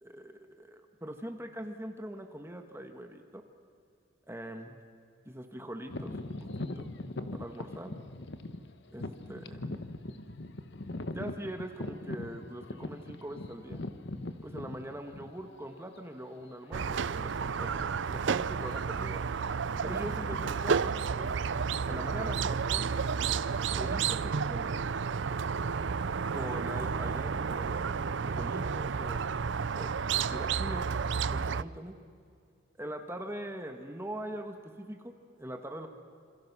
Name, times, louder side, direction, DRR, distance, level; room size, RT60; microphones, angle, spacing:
voice 1, 0.0-3.4 4.3-4.8 5.2-6.9 7.3-8.0 8.9-9.8 11.1-13.8 14.4-19.2 19.8-21.5 21.8-22.9 23.7-24.9 26.3-29.2 29.7-30.0 30.3-30.9 31.2-32.0 32.8-35.1 35.4-35.9, right 1 dB, 10° right, 5 dB, 1.5 m, -42 dB
sound 1, 5.9-15.7 16.3-16.4 17.1-17.3 17.6-17.8 18.5-19.0 19.3-22.7, left 2 dB, 60° left, 1.2 m, -41 dB
Squeak, 16.7-31.6, right 6 dB, 60° right, 0.5 m, -31 dB
27.5 x 27.5 x 6.1 m, 2.4 s
head